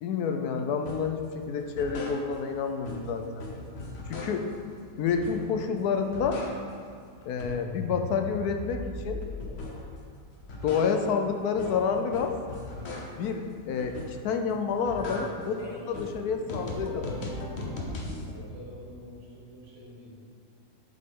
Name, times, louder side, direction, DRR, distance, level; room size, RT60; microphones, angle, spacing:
voice 1, 0.0-3.3 4.1-4.5 5.0-6.4 7.3-9.2 10.6-12.3 13.2-15.6 15.9-17.0, left 6 dB, 75° left, 5 dB, 1.1 m, -29 dB
sound 1, 0.9-1.2 1.6-2.6 2.8-4.6 5.1-5.7 6.0-6.9 7.2-10.0 10.3-13.3 13.8-14.4 14.7-18.3, left 2 dB, 50° left, 1.0 m, -38 dB
voice 2, 14.9-16.1 16.6-17.5 18.2-20.2, equal, 75° right, -4 dB, 2.0 m, -44 dB
7.7 x 5.3 x 3.6 m, 2.3 s
omnidirectional pair, 1.7 m